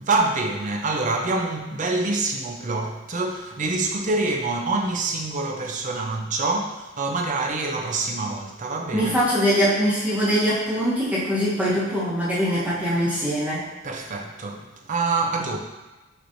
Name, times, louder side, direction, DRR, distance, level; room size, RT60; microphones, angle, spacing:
voice 1, 0.0-9.2 13.8-15.6, right 3 dB, 40° right, 0.5 m, -26 dB
voice 2, 8.9-13.6, equal, 5° right, 1.1 m, -22 dB
6.4 x 3.1 x 2.7 m
head